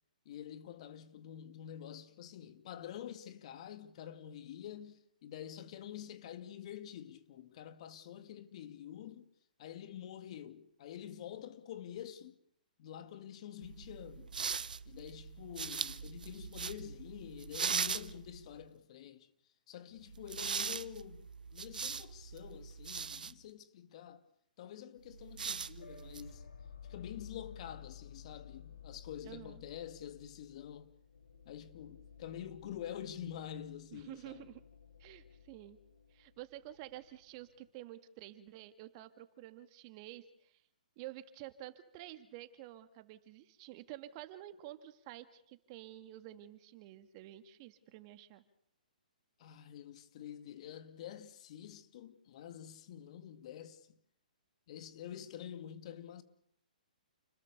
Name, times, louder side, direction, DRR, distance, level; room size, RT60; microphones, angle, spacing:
voice 1, 0.3-9.3 9.6-12.4 12.8-14.3 14.9-19.3 19.7-24.2 24.6-26.4 26.9-30.9 31.4-34.5 49.4-54.0 54.7-56.2, left 10 dB, 50° left, 2.3 m, -47 dB
sound 1, 13.6-18.6 20.1-23.3 25.1-26.4, right 6 dB, 80° right, 1.1 m, -40 dB
sound 2, 25.8-37.7, left 8 dB, 85° left, 4.6 m, -55 dB
voice 2, 29.2-29.6 33.9-34.6 35.0-35.8 36.1-40.6 41.0-48.4, right 14 dB, 35° right, 2.1 m, -50 dB
29.5 x 21.0 x 6.9 m
hypercardioid pair, 140°, 4 cm